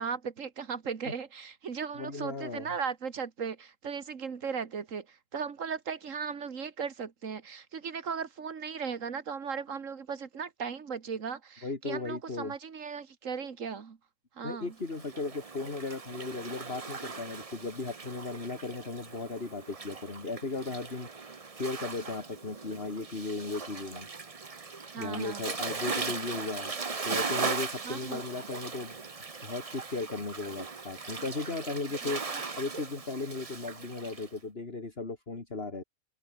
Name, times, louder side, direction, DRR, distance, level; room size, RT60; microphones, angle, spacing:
voice 1, 0.0-14.0 14.4-14.8 24.9-25.4 27.8-28.2 32.0-32.4, right 6 dB, 80° right, 2.0 m, -37 dB
voice 2, 1.9-2.8 11.6-12.6 14.4-21.1 21.5-24.1 25.0-26.8 27.0-29.0 29.4-32.2 32.6-35.8, left 3 dB, 50° left, 3.0 m, -36 dB
Waves surf, 14.8-34.3, right 4 dB, 30° right, 1.1 m, -38 dB
omnidirectional pair, 1.3 m